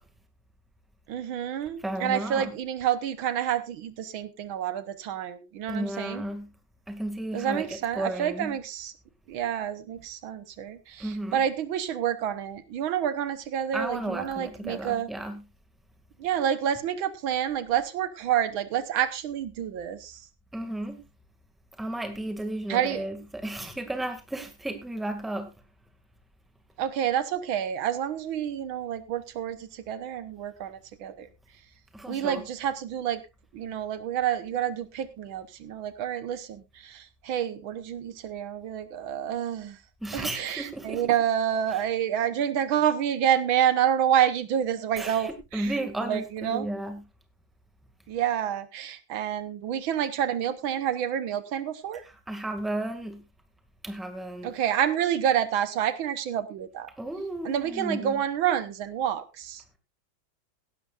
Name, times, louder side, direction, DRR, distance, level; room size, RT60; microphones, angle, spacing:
voice 1, 1.1-6.2 7.3-8.9 9.3-15.1 16.2-20.2 22.7-23.1 26.8-31.3 32.1-33.2 33.5-39.8 40.1-45.7 46.1-46.7 48.1-52.0 54.4-56.9 57.4-59.6, right 9 dB, 90° right, 1.8 m, -28 dB
voice 2, 1.8-2.5 5.7-6.5 6.9-8.5 11.0-11.4 13.7-15.4 20.5-21.0 21.8-25.5 31.9-32.4 40.0-41.1 41.7-41.8 45.0-47.0 52.0-53.2 53.8-54.5 57.0-58.2, right 1 dB, ahead, 1.8 m, -34 dB
17.0 x 12.0 x 2.5 m
omnidirectional pair, 2.2 m